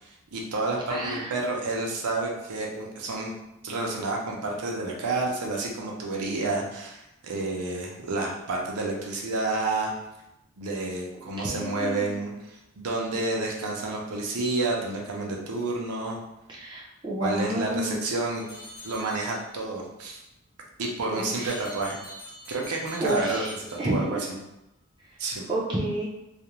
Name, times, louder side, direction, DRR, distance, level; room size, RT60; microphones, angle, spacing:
voice 1, 0.0-3.3 3.6-9.9 10.6-16.2 17.2-18.4 18.8-20.2 20.8-22.0 22.5-24.2 25.2-25.4, right 2 dB, 90° right, -1 dB, 0.6 m, -30 dB
voice 2, 0.9-1.5 11.4-12.1 16.5-18.0 21.1-21.6 23.0-23.5 23.8-23.9 25.5-26.1, right 1 dB, 20° right, -4 dB, 0.5 m, -30 dB
sound 1, 18.4-19.7 21.3-24.4, left 1 dB, 25° left, 0.9 m, -45 dB
2.4 x 2.1 x 2.9 m, 0.89 s
head